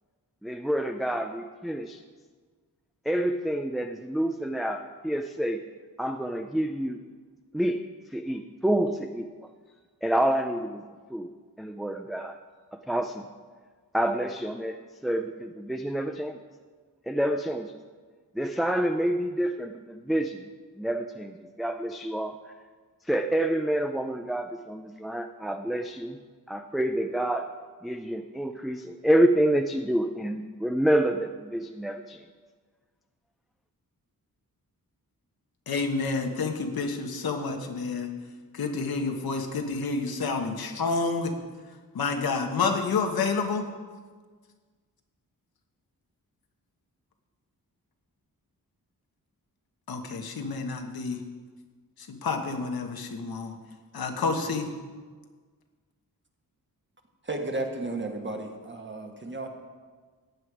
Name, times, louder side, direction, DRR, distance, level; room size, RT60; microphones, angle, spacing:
voice 1, 0.4-2.0 3.1-5.6 6.0-7.0 7.5-7.8 8.1-9.3 10.0-10.8 11.1-11.3 11.6-12.4 12.9-13.2 13.9-14.8 15.0-16.4 17.1-17.7 18.3-20.5 20.8-22.4 23.1-26.2 26.5-27.5 27.8-32.2, right 1 dB, ahead, 5 dB, 0.4 m, -28 dB
voice 2, 35.7-38.1 38.5-41.3 41.9-43.7 49.9-51.2 52.0-53.6 53.9-54.7, left 4 dB, 85° left, 4 dB, 1.4 m, -29 dB
voice 3, 57.2-59.5, right 2 dB, 30° right, 3 dB, 1.4 m, -33 dB
15.0 x 9.5 x 4.8 m, 1.5 s
wide cardioid pair, 155°, 36 cm